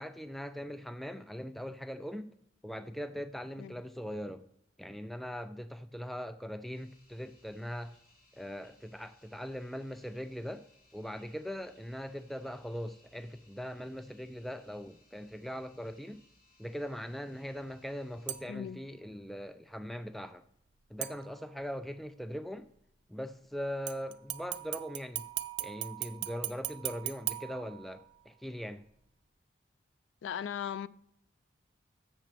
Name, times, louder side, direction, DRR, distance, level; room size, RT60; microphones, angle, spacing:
voice 1, 0.0-2.3 2.6-4.5 4.8-8.0 8.3-10.7 10.9-16.2 16.6-20.4 20.9-22.7 23.1-25.3 25.6-28.8, equal, ahead, 0.3 m, -41 dB
sound 1, 6.7-18.4, left 2 dB, 55° left, 3.2 m, -66 dB
sound 2, 18.3-18.7 21.0-21.7 23.9-28.3 28.7-28.8, right 15 dB, 75° right, 0.4 m, -39 dB
voice 2, 18.5-18.8 30.2-30.9, left 8 dB, 90° left, 0.3 m, -37 dB
6.8 x 6.1 x 6.8 m
head